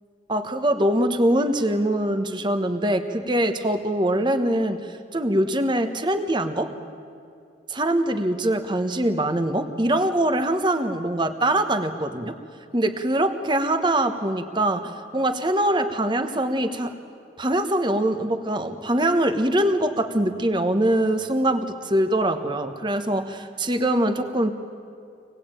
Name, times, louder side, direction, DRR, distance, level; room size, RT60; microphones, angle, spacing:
voice 1, 0.3-6.7 7.7-12.4 12.7-16.9 17.4-24.5, right 1 dB, 25° right, 8 dB, 1.2 m, -23 dB
25.5 x 19.5 x 9.0 m, 2.5 s
head